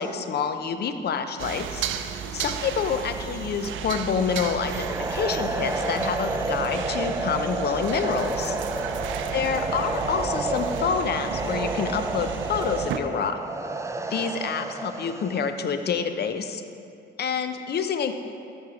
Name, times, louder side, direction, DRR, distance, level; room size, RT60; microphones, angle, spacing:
voice 1, 0.0-1.9 2.3-8.6 9.3-13.4 14.1-16.6 17.2-18.1, left 6 dB, 55° left, 8 dB, 0.7 m, -27 dB
sound 1, 1.4-13.0, right 8 dB, 75° right, 0.5 m, -34 dB
sound 2, 4.4-15.5, right 2 dB, 15° right, 0.5 m, -30 dB
12.5 x 4.5 x 5.0 m, 2.5 s
cardioid pair, 90°, 20 cm